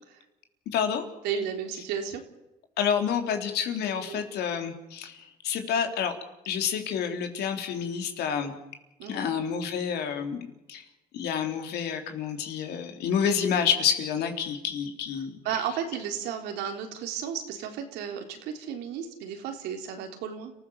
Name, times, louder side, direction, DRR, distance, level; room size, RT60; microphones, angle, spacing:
voice 1, 0.7-1.0 2.8-5.2 5.4-6.1 6.5-8.5 9.1-10.4 10.7-10.8 11.1-15.4, left 7 dB, 75° left, 5 dB, 3.8 m, -28 dB
voice 2, 1.2-2.2 4.1-4.2 9.0-9.3 15.4-20.5, right 8 dB, 90° right, 4 dB, 3.6 m, -33 dB
30.0 x 15.5 x 7.3 m, 0.96 s
cardioid pair, 110°, 17 cm